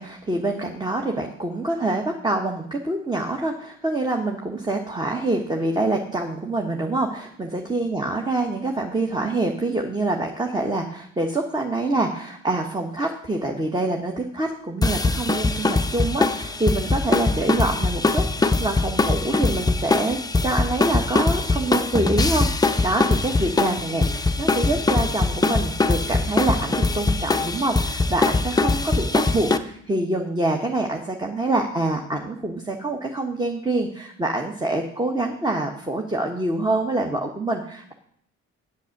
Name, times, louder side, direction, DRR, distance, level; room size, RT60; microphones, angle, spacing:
voice 1, 0.0-37.9, right 2 dB, 15° right, 2 dB, 1.3 m, -26 dB
sound 1, 14.8-29.6, left 3 dB, 15° left, 0.7 m, -22 dB
8.3 x 8.1 x 6.6 m, 0.66 s
cardioid pair, 90°, 30 cm